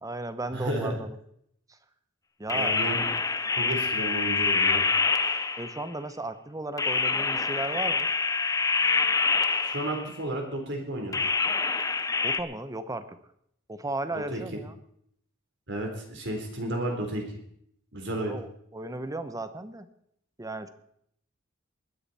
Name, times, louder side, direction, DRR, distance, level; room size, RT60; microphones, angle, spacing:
voice 1, 0.0-1.2 2.4-2.8 5.6-8.1 12.2-13.2 13.7-14.7 18.3-19.9 20.4-20.7, right 2 dB, 15° right, 11 dB, 0.9 m, -35 dB
voice 2, 0.5-1.0 2.5-3.0 3.5-4.8 9.6-11.2 14.1-14.4 15.7-17.2 17.9-18.4, right 1 dB, 60° right, 2 dB, 3.8 m, -32 dB
sound 1, 2.5-5.9 6.8-10.2 11.1-12.4, left 4 dB, 15° left, 0.6 m, -26 dB
20.5 x 10.5 x 4.3 m, 0.70 s
head